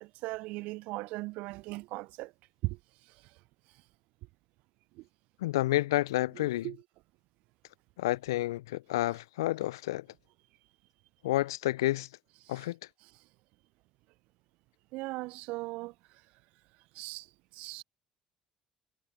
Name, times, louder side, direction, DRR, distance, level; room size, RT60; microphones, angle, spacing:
voice 1, 0.0-2.3 2.6-2.8 5.0-5.1 6.4-6.8 14.9-15.9 16.9-17.3 17.5-17.8, right 22 dB, 60° right, 0.7 m, -38 dB
voice 2, 5.4-6.7 8.0-10.1 11.2-12.1 12.5-12.8, left 16 dB, 75° left, 0.6 m, -30 dB
figure-of-eight pair, 55°, 2 cm